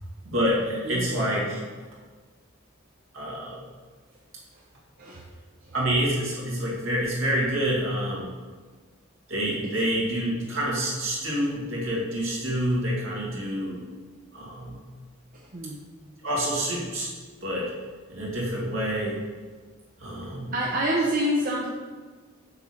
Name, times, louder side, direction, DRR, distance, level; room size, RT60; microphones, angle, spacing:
voice 1, 0.3-1.6 3.1-3.6 5.7-8.3 9.3-13.8 14.3-14.8 16.2-17.1 17.4-17.7 18.1-19.2 20.0-20.5, equal, 70° right, -4 dB, 2.2 m, -27 dB
voice 2, 0.8-1.2 5.0-5.2 5.6-5.7 15.5-15.8 20.5-21.7, equal, 40° right, -3 dB, 0.8 m, -27 dB
6.5 x 6.4 x 4.3 m, 1.4 s
head